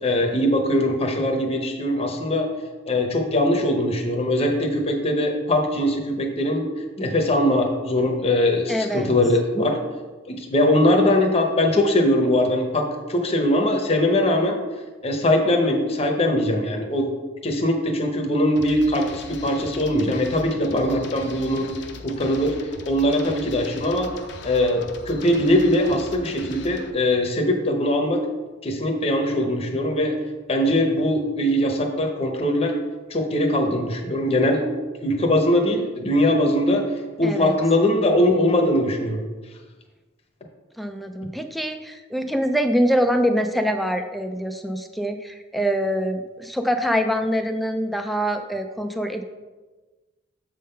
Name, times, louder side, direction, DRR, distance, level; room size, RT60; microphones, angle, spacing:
voice 1, 0.0-2.5 2.9-6.7 7.0-9.8 10.3-14.6 15.0-17.1 17.4-21.7 22.0-24.1 24.4-28.2 28.6-30.1 30.5-32.8 33.1-34.6 35.0-36.8 37.2-39.2, left 1 dB, 30° left, 2 dB, 0.8 m, -21 dB
voice 2, 8.7-9.1 37.2-37.5 40.8-49.2, equal, ahead, 6 dB, 0.4 m, -24 dB
sound 1, 18.6-26.9, left 3 dB, 65° left, 0.6 m, -40 dB
7.4 x 3.7 x 5.6 m, 1.3 s
head